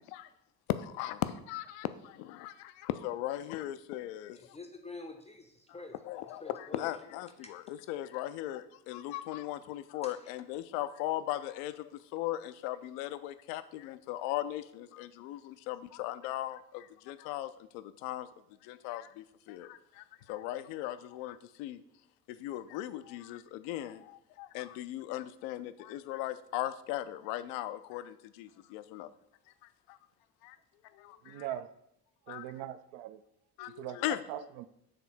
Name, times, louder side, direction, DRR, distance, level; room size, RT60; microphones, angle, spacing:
voice 1, 0.7-4.6 6.0-18.3 18.6-21.8 22.3-29.1 29.9-30.0 30.4-30.6 30.9-31.5 32.3-32.6 33.6-34.2, left 14 dB, 60° left, 13 dB, 0.5 m, -38 dB
voice 2, 4.3-6.0 6.4-6.9 7.4-7.5 10.0-10.2, left 3 dB, 15° left, 3 dB, 0.5 m, -47 dB
voice 3, 31.2-31.7 32.3-33.2 33.8-34.6, right 12 dB, 55° right, 13 dB, 0.5 m, -41 dB
6.6 x 3.4 x 4.2 m, 0.79 s
figure-of-eight pair, 45°, 47 cm